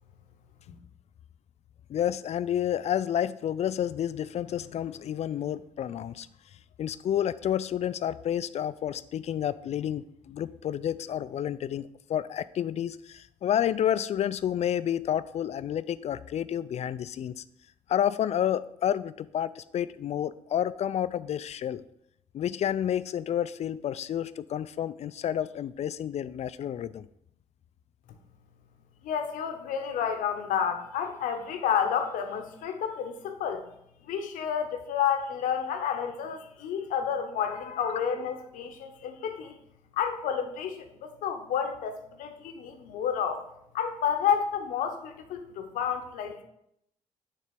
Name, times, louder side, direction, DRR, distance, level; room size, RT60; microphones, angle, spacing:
voice 1, 1.9-6.3 6.8-17.4 17.9-21.8 22.3-27.1, left 10 dB, 55° left, 15 dB, 0.4 m, -30 dB
voice 2, 29.0-33.6 34.1-39.5 39.9-43.4 43.7-46.4, left 8 dB, 75° left, 6 dB, 0.8 m, -30 dB
6.5 x 3.3 x 5.2 m, 0.75 s
supercardioid pair, 55°, 14 cm